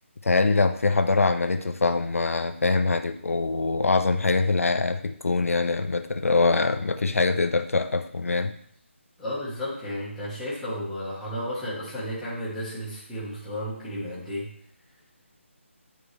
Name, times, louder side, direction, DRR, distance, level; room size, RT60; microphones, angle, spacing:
voice 1, 0.2-8.5, left 3 dB, 90° left, 9 dB, 0.7 m, -23 dB
voice 2, 9.2-14.5, equal, ahead, -13 dB, 1.3 m, -33 dB
9.2 x 4.7 x 3.3 m, 0.65 s
figure-of-eight pair, 175°, 7 cm